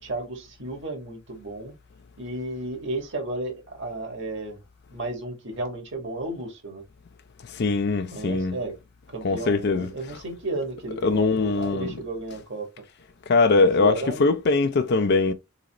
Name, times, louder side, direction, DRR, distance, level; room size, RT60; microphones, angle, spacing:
voice 1, 0.0-1.7 2.2-4.6 4.9-6.8 8.1-8.7 9.1-12.7 13.5-14.3, right 2 dB, 60° right, 1.7 m, -33 dB
voice 2, 7.5-8.6 9.2-9.9 11.0-11.9 13.3-15.3, left 3 dB, 50° left, 0.5 m, -21 dB
4.2 x 3.9 x 2.9 m
head